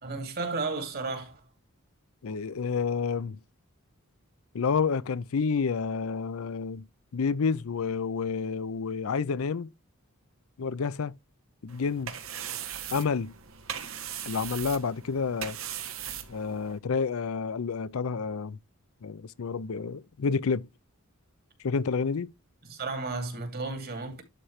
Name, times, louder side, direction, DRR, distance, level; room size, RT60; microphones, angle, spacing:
voice 1, 0.0-1.4 22.7-24.2, right 3 dB, 45° right, 2.3 m, -33 dB
voice 2, 2.2-3.4 4.5-6.8 7.1-9.7 10.6-11.1 11.6-12.1 12.9-13.3 14.3-15.6 16.3-18.6 19.0-20.7 21.6-22.3, left 5 dB, 75° left, 0.5 m, -29 dB
sound 1, 11.7-16.8, right 9 dB, 70° right, 1.4 m, -39 dB
11.5 x 4.4 x 3.2 m
head